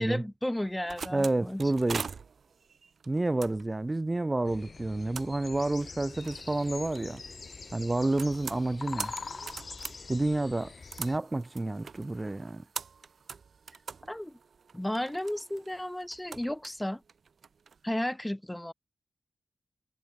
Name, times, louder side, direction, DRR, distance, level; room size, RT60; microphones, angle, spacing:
voice 1, 0.0-1.6 14.1-14.4 14.7-17.0 17.8-18.7, left 1 dB, 5° left, 2.2 m, -33 dB
sound 1, 0.6-17.8, right 5 dB, 65° right, 0.8 m, -44 dB
voice 2, 1.1-2.0 3.1-7.2 7.7-9.1 10.1-10.7 11.0-12.6, right 2 dB, 20° right, 0.4 m, -29 dB
sound 2, 4.4-11.2, left 4 dB, 45° left, 1.1 m, -44 dB
wide cardioid pair, 120°, 0 cm